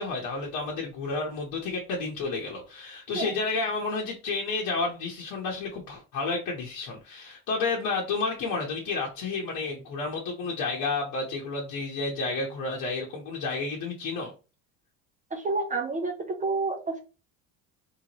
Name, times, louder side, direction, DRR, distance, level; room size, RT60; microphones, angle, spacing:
voice 1, 0.0-14.3, left 3 dB, 60° left, 1.1 m, -31 dB
voice 2, 15.3-17.0, right 3 dB, 20° right, 0.6 m, -29 dB
3.5 x 2.9 x 3.0 m
cardioid pair, 120°, 37 cm